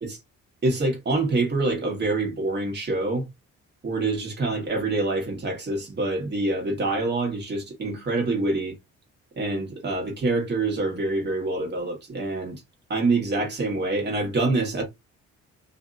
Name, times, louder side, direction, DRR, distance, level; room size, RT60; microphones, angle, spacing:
voice 1, 0.6-3.3 3.8-8.7 9.4-12.6 12.9-14.8, right 2 dB, 35° right, 1.4 m, -26 dB
2.7 x 2.6 x 2.5 m
cardioid pair, 90°, 30 cm